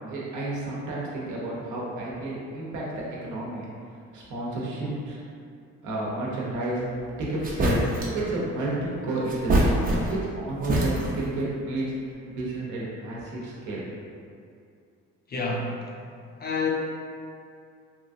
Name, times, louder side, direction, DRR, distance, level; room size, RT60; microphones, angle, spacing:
voice 1, 0.1-5.2 5.8-9.8 10.1-13.9, right 2 dB, 80° right, -5 dB, 0.8 m, -31 dB
sound 1, 7.0-7.1 7.4-8.2 9.3-10.3 10.6-11.3, right 1 dB, 30° right, 0.5 m, -24 dB
voice 2, 15.3-15.8 16.4-16.7, left 4 dB, 30° left, -2 dB, 0.5 m, -28 dB
3.0 x 2.4 x 2.6 m, 2.4 s
cardioid pair, 90°, 30 cm